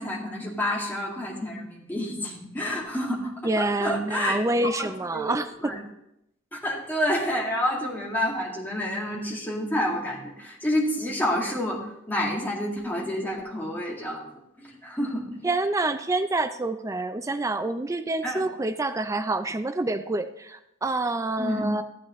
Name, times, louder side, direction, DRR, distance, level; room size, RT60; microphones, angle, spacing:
voice 1, 0.0-3.3 3.6-4.4 4.8-5.3 5.6-5.8 6.5-14.3 14.6-15.4 18.2-18.4 21.4-21.7, left 1 dB, 10° left, -4 dB, 2.2 m, -29 dB
voice 2, 3.4-5.7 15.4-21.8, right 2 dB, 15° right, 9 dB, 0.4 m, -27 dB
15.0 x 8.1 x 3.1 m, 0.82 s
head